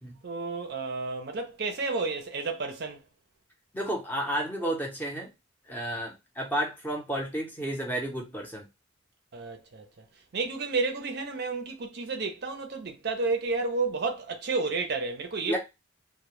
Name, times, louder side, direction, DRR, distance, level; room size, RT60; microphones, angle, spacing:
voice 1, 0.2-3.0 9.3-9.9 10.3-15.6, right 3 dB, 50° right, 0.5 m, -31 dB
voice 2, 3.7-5.3 5.7-8.7 15.5-15.6, right 1 dB, 10° left, 0.6 m, -31 dB
2.1 x 2.1 x 2.9 m
head